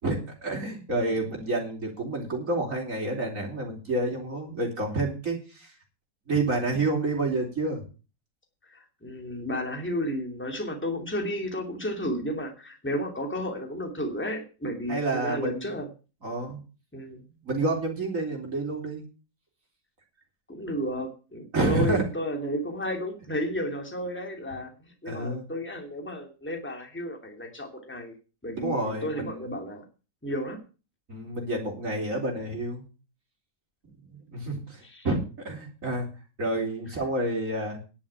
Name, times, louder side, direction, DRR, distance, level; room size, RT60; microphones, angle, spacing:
voice 1, 0.0-5.7 6.3-7.8 14.9-15.7 16.2-16.6 17.4-19.1 21.5-22.0 25.1-25.4 28.6-29.4 31.1-32.8 34.1-35.2 35.4-36.1 36.4-37.8, right 2 dB, 50° right, 1 dB, 4.3 m, -29 dB
voice 2, 8.7-15.9 16.9-17.2 20.5-28.1 28.4-29.8 30.2-30.6 34.8-35.1, equal, 5° left, 3 dB, 2.7 m, -32 dB
11.0 x 7.3 x 8.9 m, 0.33 s
omnidirectional pair, 1.8 m